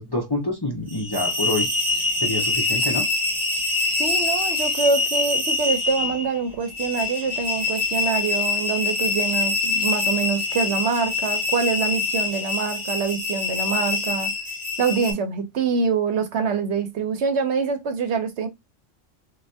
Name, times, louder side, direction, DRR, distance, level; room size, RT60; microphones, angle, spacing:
voice 1, 0.0-1.7 2.2-3.1, left 2 dB, 25° left, 0.6 m, -27 dB
sound 1, 0.9-15.1, left 3 dB, 20° right, 1.7 m, -25 dB
voice 2, 4.0-14.3 14.8-18.5, right 5 dB, 65° right, 0.9 m, -25 dB
3.2 x 2.5 x 2.6 m
omnidirectional pair, 1.3 m